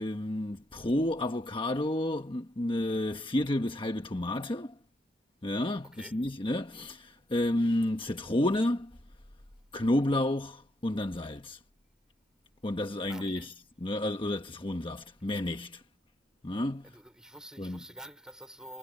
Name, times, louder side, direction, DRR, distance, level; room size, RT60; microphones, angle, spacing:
voice 1, 0.0-4.8 5.4-8.9 9.7-11.6 12.6-15.8 16.4-17.0 17.6-17.9, left 1 dB, 30° left, 1.2 m, -31 dB
voice 2, 13.1-13.5 16.8-18.8, right 1 dB, 5° right, 3.5 m, -47 dB
head